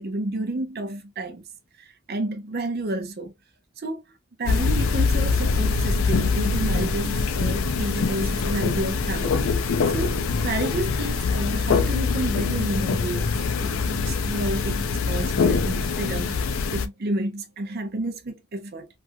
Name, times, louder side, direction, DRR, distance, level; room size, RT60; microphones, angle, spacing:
voice 1, 0.0-1.4 1.8-3.3 3.8-4.0 4.4-9.5 9.9-13.3 13.6-18.9, right 1 dB, 50° right, 0.6 m, -30 dB
sound 1, 4.5-16.9, left 4 dB, 70° left, 0.4 m, -24 dB
3.1 x 2.4 x 2.6 m
head